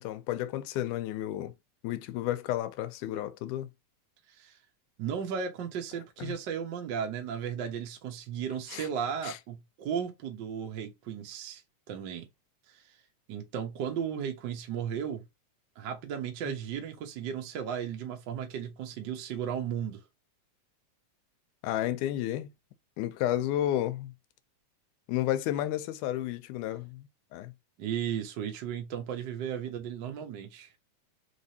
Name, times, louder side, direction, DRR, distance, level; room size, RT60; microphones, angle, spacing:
voice 1, 0.0-1.5 1.8-3.7 6.2-6.4 8.7-8.9 9.2-9.4 21.6-22.5 23.0-24.1 25.1-27.5, left 13 dB, 85° left, 2.0 m, -32 dB
voice 2, 5.0-11.6 11.9-12.3 12.7-12.8 13.3-15.2 15.8-20.0 27.8-30.7, right 8 dB, 85° right, 1.0 m, -35 dB
4.5 x 3.2 x 2.8 m
omnidirectional pair, 3.5 m